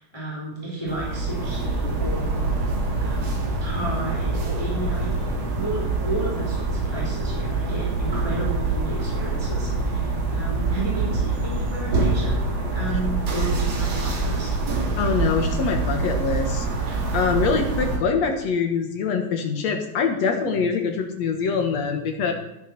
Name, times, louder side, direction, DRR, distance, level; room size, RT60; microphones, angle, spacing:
voice 1, 0.0-2.7 3.0-5.2 5.5-12.4 12.7-15.0, right 1 dB, 5° left, -5 dB, 3.9 m, -33 dB
sound 1, 0.9-18.0, right 3 dB, 45° right, 3.0 m, -25 dB
voice 2, 15.0-16.7 17.1-22.3, left 5 dB, 65° left, 3 dB, 1.8 m, -24 dB
12.5 x 8.3 x 6.7 m, 0.85 s
omnidirectional pair, 4.7 m